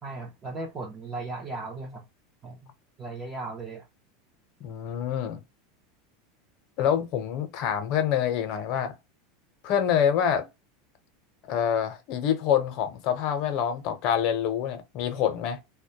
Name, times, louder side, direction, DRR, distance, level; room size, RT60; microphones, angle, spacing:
voice 1, 0.0-2.0 2.4-2.7 3.0-3.9, right 3 dB, 25° right, 0.5 m, -37 dB
voice 2, 4.6-5.4 6.8-8.9 9.6-10.4 11.5-15.6, left 9 dB, 50° left, 0.7 m, -26 dB
2.2 x 2.1 x 2.7 m
supercardioid pair, 145°, 0 cm